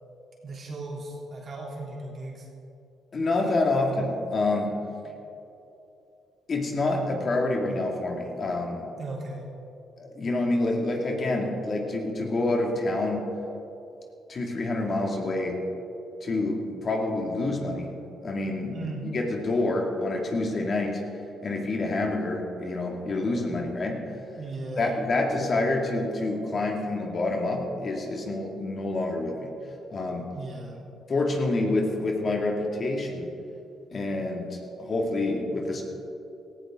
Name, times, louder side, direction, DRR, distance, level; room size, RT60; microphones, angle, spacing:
voice 1, 0.4-2.5 8.9-9.4 18.7-19.1 24.3-24.9 30.3-30.8, right 2 dB, 50° right, -2 dB, 3.5 m, -37 dB
voice 2, 3.1-4.7 6.5-8.9 10.0-13.2 14.3-15.6 16.2-17.9 18.2-18.8 19.0-24.0 24.8-29.5 29.9-30.3 31.1-33.3 33.9-35.8, left 2 dB, 45° left, 1 dB, 2.5 m, -27 dB
17.5 x 15.0 x 3.9 m, 2.8 s
cardioid pair, 90°, 0 cm